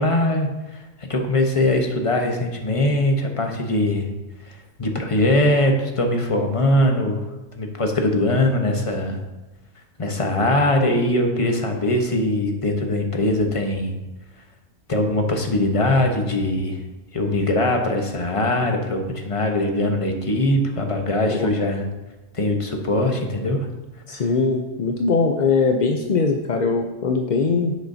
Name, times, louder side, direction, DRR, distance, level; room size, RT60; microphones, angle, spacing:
voice 1, 0.0-4.1 4.5-7.2 7.5-9.2 10.0-13.9 14.9-16.8 17.1-21.9 22.3-23.7 24.1-24.2, left 1 dB, 25° left, 3 dB, 0.9 m, -21 dB
voice 2, 24.1-27.8, left 4 dB, 55° left, 3 dB, 0.5 m, -21 dB
10.5 x 8.3 x 2.7 m, 1.0 s
omnidirectional pair, 1.5 m